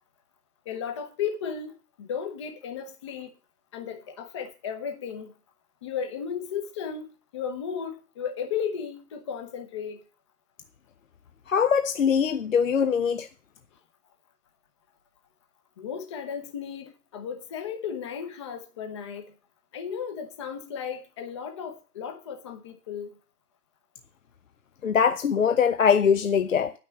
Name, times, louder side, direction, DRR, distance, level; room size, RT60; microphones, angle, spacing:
voice 1, 0.7-3.3 3.7-5.3 5.8-10.0 15.8-19.3 19.7-23.1, left 7 dB, 20° left, 0.8 m, -35 dB
voice 2, 11.5-13.3 24.8-26.7, left 7 dB, 55° left, 0.7 m, -22 dB
9.7 x 6.1 x 7.2 m
figure-of-eight pair, 140°, 48 cm